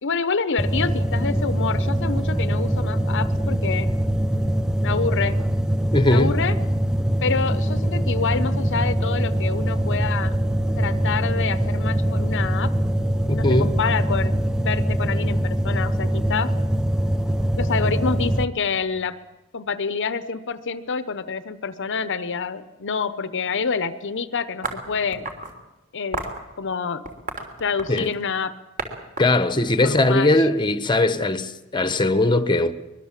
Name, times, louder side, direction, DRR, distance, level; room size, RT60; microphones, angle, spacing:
voice 1, 0.0-3.9 4.8-5.4 6.1-6.6 7.2-10.4 10.8-12.7 13.3-16.6 17.6-19.2 19.5-25.2 25.9-26.2 26.6-27.0 27.6-28.6 29.8-30.3, left 5 dB, 60° left, 0.9 m, -27 dB
sound 1, 0.6-18.4, equal, 5° right, 0.7 m, -23 dB
voice 2, 5.9-6.3 13.3-13.7 27.9-28.1 29.2-32.7, left 2 dB, 20° left, 1.1 m, -20 dB
sound 2, 24.6-25.5 26.1-26.4 27.0-28.2 28.8-28.9 29.2-30.6, right 3 dB, 40° right, 3.3 m, -32 dB
23.5 x 22.0 x 7.5 m
head